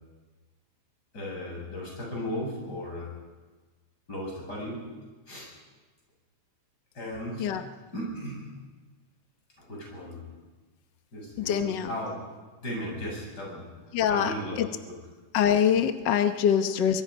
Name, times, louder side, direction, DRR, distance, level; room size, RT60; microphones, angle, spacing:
voice 1, 1.1-3.2 4.1-4.8 5.3-5.5 6.9-7.5 7.9-8.5 9.6-10.3 11.1-12.1 12.6-13.7 14.1-14.5 14.9-15.0, equal, 30° left, -3 dB, 8.6 m, -36 dB
voice 2, 11.4-11.9 13.9-14.7 15.3-17.0, left 8 dB, 75° left, 8 dB, 1.0 m, -24 dB
23.5 x 23.0 x 5.4 m, 1.2 s
omnidirectional pair, 3.4 m